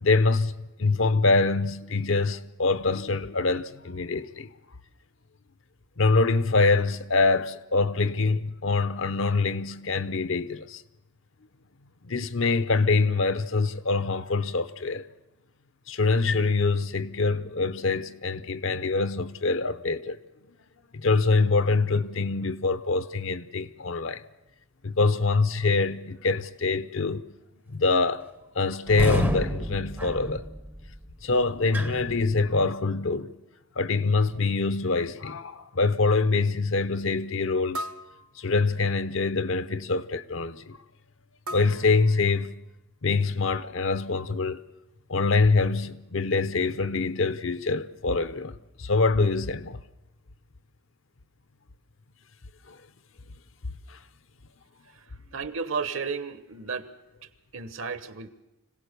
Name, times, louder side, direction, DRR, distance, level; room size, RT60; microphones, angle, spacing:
voice 1, 0.0-4.5 6.0-10.8 12.0-15.0 15.9-20.2 20.9-24.2 24.8-27.3 27.7-28.3 28.5-30.4 31.2-33.3 33.8-37.9 38.4-40.8 41.5-42.5 43.0-44.6 45.1-48.5 48.8-49.8 52.7-52.8 53.9-54.0, left 3 dB, 60° left, 0.8 m, -25 dB
sound 1, 28.9-32.7, right 1 dB, 10° right, 0.6 m, -32 dB
sound 2, 34.4-34.5 35.1-35.2 35.8-35.9 37.7-38.9 41.5-42.7, equal, 85° right, 0.9 m, -40 dB
voice 2, 55.3-56.9 57.5-58.3, right 5 dB, 65° right, 1.2 m, -32 dB
25.5 x 17.5 x 6.8 m
head